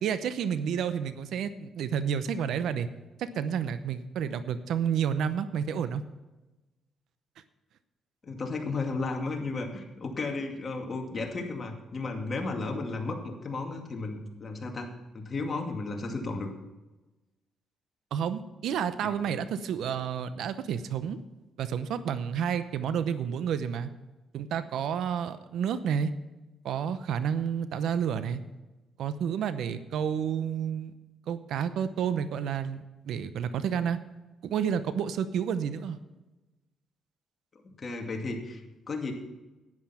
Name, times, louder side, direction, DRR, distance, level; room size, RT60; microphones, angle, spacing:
voice 1, 0.0-2.9 3.2-6.0 18.1-21.2 21.6-23.9 24.3-26.1 26.6-28.4 29.0-30.9 31.3-34.0 34.4-36.0, right 8 dB, 75° right, 12 dB, 0.8 m, -30 dB
voice 2, 8.2-14.9 15.1-16.5 37.6-39.1, left 3 dB, 40° left, 2 dB, 2.3 m, -34 dB
10.5 x 10.0 x 5.8 m, 1.1 s
cardioid pair, 90°, 0 cm